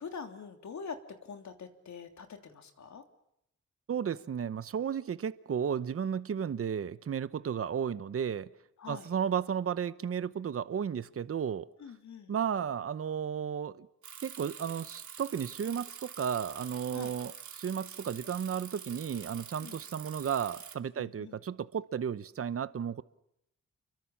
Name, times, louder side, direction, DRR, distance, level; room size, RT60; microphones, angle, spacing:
voice 1, 0.0-3.0 8.8-9.1 11.8-12.3 16.9-17.1 19.6-19.8 21.0-21.4, left 5 dB, 75° left, 6 dB, 3.1 m, -44 dB
voice 2, 3.9-8.5 8.9-11.7 12.3-13.9 14.2-23.0, right 8 dB, 50° right, 15 dB, 0.9 m, -33 dB
Bicycle, 14.0-20.7, right 8 dB, 75° right, 2.6 m, -47 dB
29.5 x 23.5 x 7.3 m, 0.78 s
wide cardioid pair, 105°, 29 cm